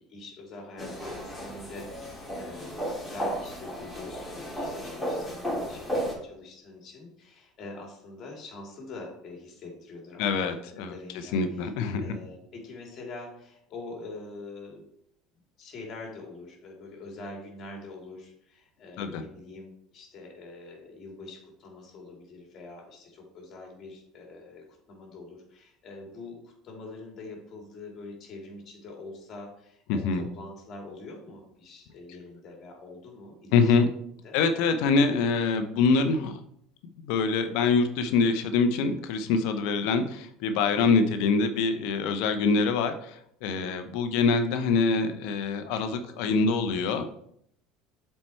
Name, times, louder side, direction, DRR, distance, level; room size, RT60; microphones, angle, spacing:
voice 1, 0.0-11.7 12.0-14.8 15.6-34.0 34.2-34.4 43.6-43.8, left 2 dB, 45° left, 0 dB, 2.8 m, -44 dB
sound 1, 0.8-6.1, equal, 5° left, 3.2 m, -34 dB
voice 2, 10.2-10.9 11.3-12.2 19.0-19.2 29.9-30.2 33.5-33.9 34.3-36.4 37.0-47.1, left 4 dB, 70° left, 8 dB, 0.7 m, -25 dB
7.3 x 4.5 x 4.4 m, 0.72 s
hypercardioid pair, 80°, 0 cm